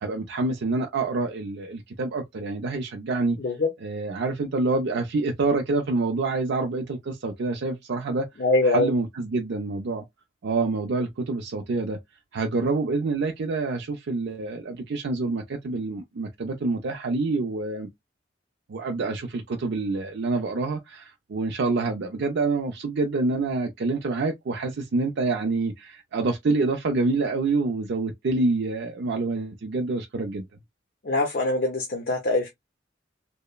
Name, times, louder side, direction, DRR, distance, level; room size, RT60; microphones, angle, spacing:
voice 1, 0.0-3.4 3.8-8.3 8.6-10.0 10.4-12.0 12.3-17.9 18.7-30.4, right 3 dB, 60° right, 0.4 m, -27 dB
voice 2, 3.4-3.7 8.4-8.9 31.0-32.5, left 2 dB, 50° left, 0.6 m, -23 dB
2.9 x 2.0 x 2.3 m
head